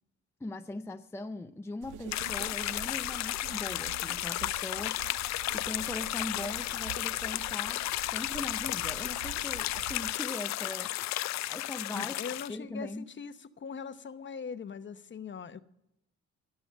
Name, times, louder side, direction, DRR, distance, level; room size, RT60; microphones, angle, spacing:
voice 1, 0.4-7.8 8.1-11.1 11.5-12.2 12.5-13.1, left 2 dB, 10° left, 0.5 m, -40 dB
sound 1, 1.8-10.1, right 14 dB, 80° right, 0.5 m, -47 dB
sound 2, 2.1-12.5, left 15 dB, 65° left, 0.4 m, -33 dB
voice 2, 11.9-15.6, left 6 dB, 40° left, 0.9 m, -41 dB
17.0 x 7.0 x 8.7 m
cardioid pair, 90°, 30 cm